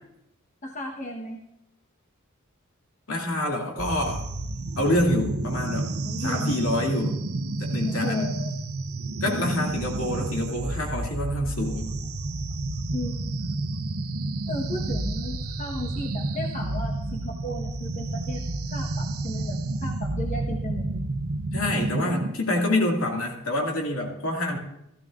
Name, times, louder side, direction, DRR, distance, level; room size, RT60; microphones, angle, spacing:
voice 1, 0.6-1.4 6.0-6.5 7.7-8.5 9.2-9.7 12.9-13.2 14.5-18.4 18.7-21.1, left 1 dB, 35° left, 0 dB, 1.2 m, -35 dB
voice 2, 3.1-4.2 4.8-5.9 6.2-7.2 7.6-8.3 9.2-11.9 21.5-24.6, left 1 dB, 75° left, 0 dB, 2.4 m, -27 dB
sound 1, 3.8-22.3, right 2 dB, 90° right, 0.8 m, -30 dB
16.5 x 14.5 x 2.5 m, 0.81 s
head